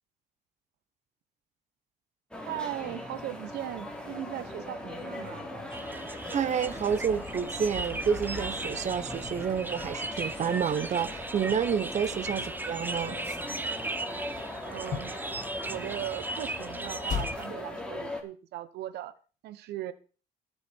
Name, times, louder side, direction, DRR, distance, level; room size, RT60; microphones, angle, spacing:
sound 1, 2.3-18.2, left 1 dB, 5° left, 3.7 m, -40 dB
voice 1, 2.4-5.5 12.0-12.2 14.6-15.2 15.6-19.1 19.4-19.9, right 12 dB, 75° right, 1.2 m, -38 dB
sound 2, 5.7-17.5, right 2 dB, 10° right, 1.0 m, -38 dB
voice 2, 6.3-13.2, right 7 dB, 45° right, 1.2 m, -29 dB
sound 3, 6.7-14.0 14.2-15.3 16.2-16.3 17.1-17.6, left 7 dB, 50° left, 2.3 m, -42 dB
20.5 x 7.0 x 4.6 m
cardioid pair, 110°, 17 cm